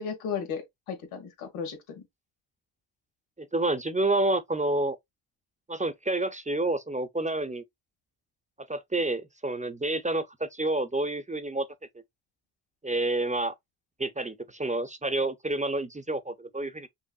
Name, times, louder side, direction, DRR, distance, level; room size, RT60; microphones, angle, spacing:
voice 1, 0.0-2.0, left 6 dB, 85° left, 1.7 m, -35 dB
voice 2, 3.4-5.0 5.7-7.6 8.7-11.7 12.8-13.5 14.0-16.9, right 2 dB, 15° right, 0.7 m, -29 dB
5.5 x 2.4 x 2.4 m
supercardioid pair, 60°, 48 cm